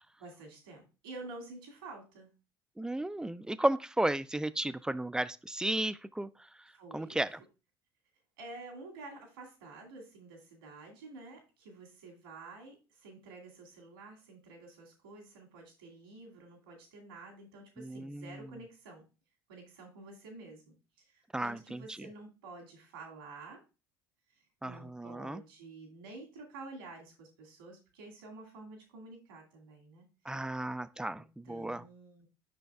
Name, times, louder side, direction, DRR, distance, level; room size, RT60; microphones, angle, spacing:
voice 1, 0.2-2.3 6.7-7.2 8.4-19.0 19.5-20.8 21.1-23.6 24.6-30.1 31.1-32.3, right 3 dB, 85° right, 2.2 m, -50 dB
voice 2, 2.8-6.3 6.9-7.4 17.8-18.4 21.3-22.0 24.6-25.4 30.3-31.8, right 1 dB, 5° right, 0.3 m, -34 dB
7.8 x 5.8 x 2.3 m
hypercardioid pair, 70°, 12 cm